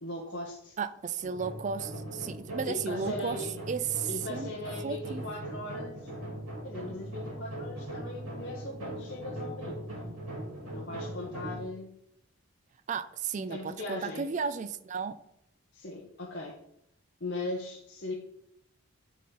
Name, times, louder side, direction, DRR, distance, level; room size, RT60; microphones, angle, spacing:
voice 1, 0.0-0.8 2.6-3.6 4.1-6.1 6.6-9.9 10.7-12.0 13.4-14.3 15.7-16.6 17.2-18.1, left 2 dB, 50° left, -2 dB, 1.0 m, -39 dB
voice 2, 0.8-4.5 4.8-5.2 12.9-15.2, right 6 dB, 35° right, 13 dB, 0.3 m, -34 dB
sound 1, 1.2-11.6, right 1 dB, 85° right, 2.7 m, -40 dB
11.0 x 4.2 x 3.8 m, 0.76 s
head